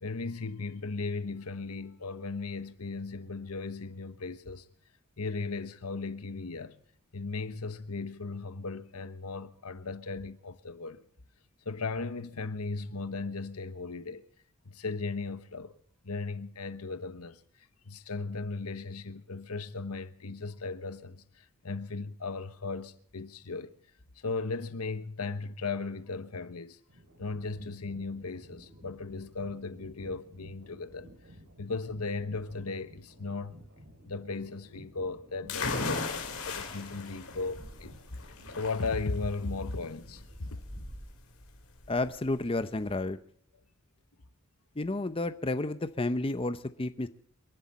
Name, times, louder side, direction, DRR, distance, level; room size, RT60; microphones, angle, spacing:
voice 1, 0.0-4.6 5.2-6.8 7.1-11.0 11.6-14.3 14.6-15.7 16.0-17.4 17.8-23.7 24.2-26.8 27.2-31.1 31.6-33.6 34.1-38.0 38.5-40.2 40.5-40.6, left 3 dB, 85° left, 1.1 m, -36 dB
sound 1, 26.9-41.1, equal, 60° right, 3.0 m, -54 dB
sound 2, 35.5-43.0, left 3 dB, 70° left, 4.3 m, -38 dB
voice 2, 41.9-43.2 44.8-47.1, left 2 dB, 25° left, 0.7 m, -31 dB
29.0 x 11.5 x 4.2 m
head